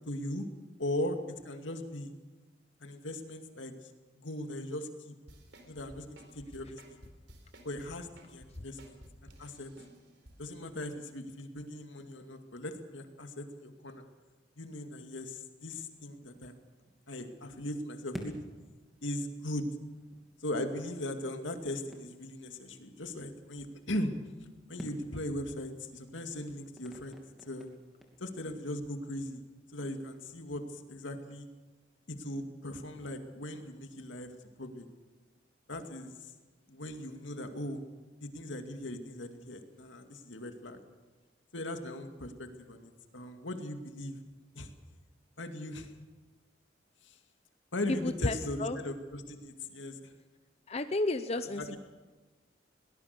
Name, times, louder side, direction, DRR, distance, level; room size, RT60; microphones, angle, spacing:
voice 1, 0.1-0.5 0.8-1.2 1.4-2.1 2.8-5.2 5.7-7.0 7.6-9.0 9.2-9.7 10.4-14.0 14.6-16.5 17.1-18.3 19.0-19.7 20.4-24.1 24.7-27.7 28.2-29.4 29.7-31.5 32.1-34.3 34.6-34.9 35.7-36.3 36.7-37.8 38.2-40.8 41.5-44.2 44.5-44.7 45.4-45.9 47.0-47.2 47.7-50.1 51.6-51.8, left 1 dB, 80° left, 6 dB, 2.3 m, -39 dB
sound 1, 5.3-10.3 10.7-10.8, right 1 dB, 65° right, 4.2 m, -54 dB
sound 2, 15.9-28.6, equal, ahead, 2.7 m, -53 dB
voice 2, 47.9-48.8 50.7-51.7, left 2 dB, 35° left, 9 dB, 0.7 m, -32 dB
22.5 x 19.0 x 6.8 m, 1.3 s
head